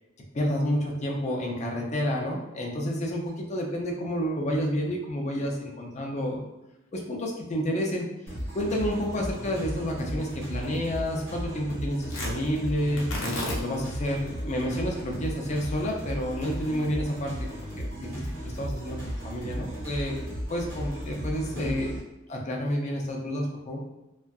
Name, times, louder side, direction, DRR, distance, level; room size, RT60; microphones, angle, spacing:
voice 1, 0.3-6.4 6.9-8.1 8.5-17.3 17.8-18.1 18.4-19.0 19.2-20.1 20.5-22.0 22.3-23.8, equal, 35° left, 0 dB, 0.4 m, -29 dB
sound 1, 8.3-22.0, equal, 70° right, 1.4 m, -35 dB
Tearing, 12.1-20.4, left 1 dB, 85° left, 0.8 m, -40 dB
2.6 x 2.2 x 2.3 m, 0.98 s
head